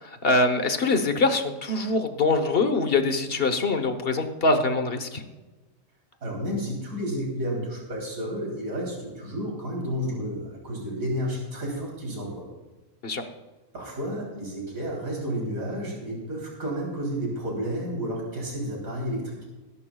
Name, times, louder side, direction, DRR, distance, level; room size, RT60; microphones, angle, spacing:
voice 1, 0.0-5.2 13.0-13.2, left 3 dB, 45° left, 8 dB, 1.3 m, -24 dB
voice 2, 6.2-12.5 13.7-19.4, equal, 90° right, -2 dB, 3.9 m, -31 dB
21.5 x 11.5 x 2.3 m, 1.2 s
omnidirectional pair, 1.4 m